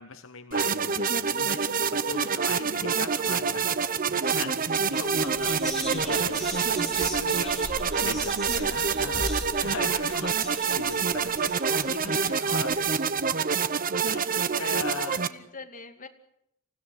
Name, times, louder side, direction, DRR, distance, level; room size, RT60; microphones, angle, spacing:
voice 1, 0.0-1.7 2.1-13.3 14.1-15.2, left 4 dB, 65° left, 10 dB, 1.1 m, -39 dB
sound 1, 0.5-15.3, right 6 dB, 40° right, 0.9 m, -27 dB
voice 2, 3.9-4.3 6.8-7.2 9.5-9.6 14.3-14.6 15.1-16.1, left 3 dB, 40° left, 5 dB, 2.5 m, -46 dB
Whispering, 4.2-4.4 4.7-12.8, equal, ahead, 6.5 m, -39 dB
27.5 x 15.5 x 10.0 m, 0.78 s
head